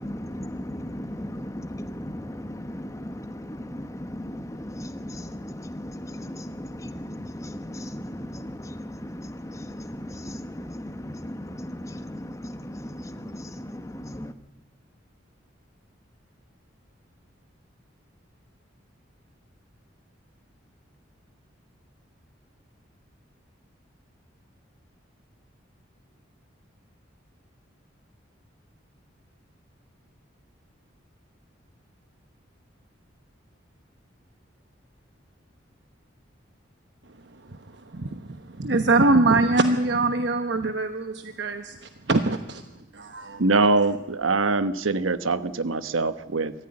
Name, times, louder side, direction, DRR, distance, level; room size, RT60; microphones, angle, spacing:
voice 1, 0.0-14.3, left 1 dB, 15° left, 10 dB, 1.0 m, -36 dB
voice 2, 38.6-41.7 42.1-42.6 42.9-43.4, right 2 dB, 60° right, 8 dB, 1.0 m, -22 dB
voice 3, 43.4-46.5, right 3 dB, 90° right, 13 dB, 1.1 m, -23 dB
24.0 x 15.0 x 9.8 m, 1.1 s
head